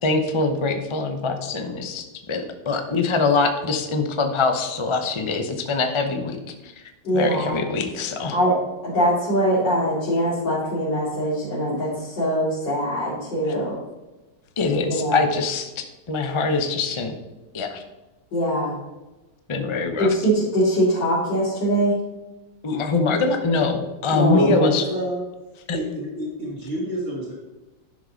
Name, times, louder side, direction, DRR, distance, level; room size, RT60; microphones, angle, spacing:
voice 1, 0.0-6.4 6.6-6.7 7.1-8.4 13.5-13.6 14.6-17.1 17.5-17.8 19.5-20.1 22.6-24.9 25.7-25.8, left 3 dB, 40° left, 6 dB, 0.4 m, -23 dB
voice 2, 7.0-7.6 8.3-8.6 8.8-13.8 14.9-15.2 18.3-18.8 20.0-21.9 24.1-24.4, equal, 70° left, -10 dB, 3.3 m, -22 dB
voice 3, 24.3-25.2 25.7-27.3, right 1 dB, 40° right, -7 dB, 2.0 m, -27 dB
11.0 x 6.6 x 4.0 m, 1.1 s
omnidirectional pair, 2.0 m